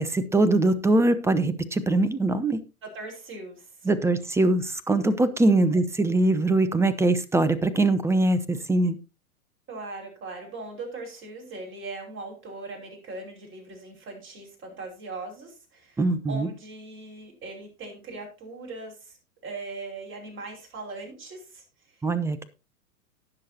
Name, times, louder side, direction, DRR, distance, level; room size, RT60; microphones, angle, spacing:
voice 1, 0.0-2.6 3.9-8.9 16.0-16.5 22.0-22.5, right 2 dB, 5° right, 0.7 m, -22 dB
voice 2, 2.8-3.9 5.4-5.8 9.7-19.2 19.4-22.0, right 3 dB, 30° right, 5.3 m, -40 dB
18.5 x 6.6 x 2.8 m
figure-of-eight pair, 95°, 43 cm